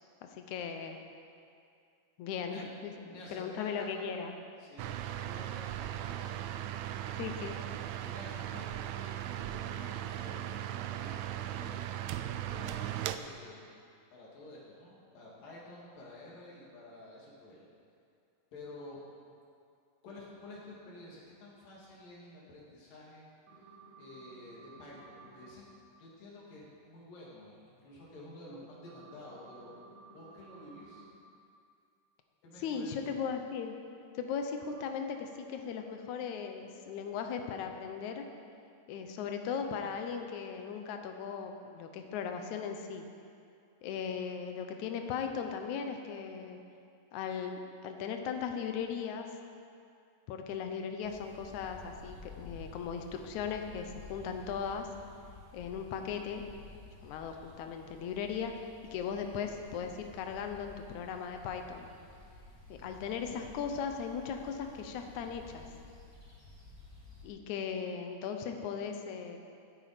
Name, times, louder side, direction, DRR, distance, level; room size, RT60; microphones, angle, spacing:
voice 1, 0.3-1.0 2.2-4.3 7.2-7.6 32.6-33.7 34.2-38.3 38.9-43.1 43.8-46.6 47.1-49.3 50.3-54.9 55.5-56.4 57.0-58.6 58.9-61.9 62.7-65.7 67.2-69.4, left 6 dB, 70° left, 5 dB, 2.1 m, -38 dB
voice 2, 3.0-4.0 4.6-6.8 8.0-9.1 9.3-13.7 14.1-17.7 18.5-19.0 20.0-23.3 23.5-25.7 26.0-29.7 30.1-31.1 32.4-33.2, left 2 dB, 90° left, -5 dB, 4.2 m, -51 dB
sound 1, 4.8-13.2, right 12 dB, 90° right, 1.6 m, -38 dB
sound 2, 23.5-25.5 28.9-31.1 34.7-34.8, right 3 dB, 70° right, 3.6 m, -55 dB
sound 3, 51.0-67.3, left 3 dB, 10° left, 1.2 m, -53 dB
14.5 x 9.3 x 5.0 m, 2.4 s
omnidirectional pair, 3.8 m